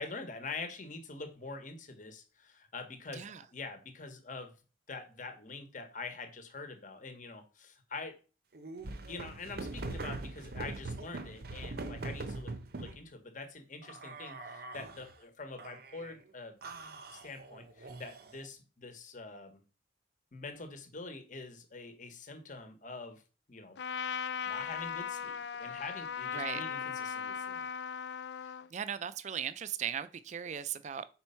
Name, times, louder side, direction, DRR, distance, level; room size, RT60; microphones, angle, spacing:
voice 1, 0.0-3.2 3.5-4.5 4.9-8.2 9.1-16.6 17.1-19.6 20.3-23.2 23.5-23.8 24.5-27.7, left 3 dB, 45° left, 1.1 m, -45 dB
sound 1, 8.5-13.0 13.8-15.1 15.6-16.2 16.6-18.4, right 2 dB, 55° right, 0.7 m, -42 dB
Trumpet, 23.8-28.7, left 7 dB, 65° left, 0.4 m, -38 dB
voice 2, 28.7-31.1, right 8 dB, 40° right, 0.3 m, -37 dB
4.5 x 4.2 x 5.5 m
head